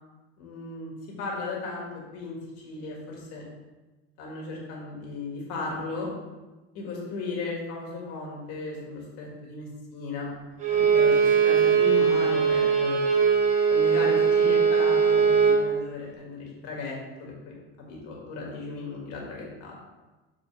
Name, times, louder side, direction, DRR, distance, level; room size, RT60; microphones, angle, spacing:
voice 1, 0.4-0.9 1.2-1.9 2.1-3.4 4.2-6.1 6.7-10.3 10.7-13.0 13.7-17.5 17.9-19.8, left 3 dB, 55° left, -2 dB, 2.4 m, -35 dB
Bowed string instrument, 10.6-15.6, right 6 dB, 25° right, 1.2 m, -21 dB
6.4 x 6.2 x 3.5 m, 1.2 s
cardioid pair, 155°, 29 cm